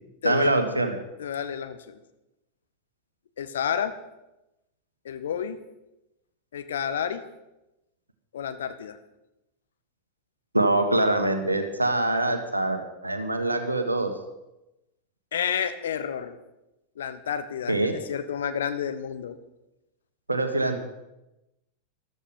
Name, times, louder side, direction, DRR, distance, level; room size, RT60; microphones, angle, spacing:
voice 1, 0.2-0.9 10.5-14.1 17.7-17.9 20.3-20.8, right 2 dB, 85° right, 7 dB, 1.4 m, -24 dB
voice 2, 1.2-2.0 3.4-3.9 5.0-5.6 6.5-7.2 8.3-9.0 15.3-16.3 17.0-19.4, left 8 dB, 65° left, 10 dB, 1.1 m, -30 dB
13.5 x 13.0 x 5.3 m, 0.94 s
figure-of-eight pair, 90°, 0 cm